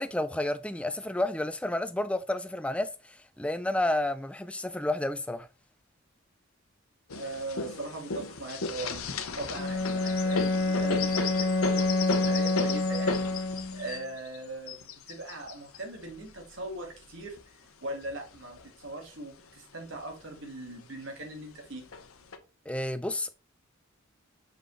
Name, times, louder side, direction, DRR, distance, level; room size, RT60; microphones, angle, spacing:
voice 1, 0.0-5.5 22.7-23.3, left 1 dB, 5° left, 0.3 m, -31 dB
sound 1, 7.1-17.4 18.0-19.0 19.4-19.5 19.7-20.4 21.2-21.3 21.9-22.4, left 4 dB, 85° left, 0.8 m, -35 dB
voice 2, 7.1-9.1 9.4-13.3 13.7-21.9, right 2 dB, 65° right, 1.8 m, -40 dB
Bowed string instrument, 9.5-13.9, left 2 dB, 60° left, 1.0 m, -28 dB
6.2 x 5.1 x 3.2 m
head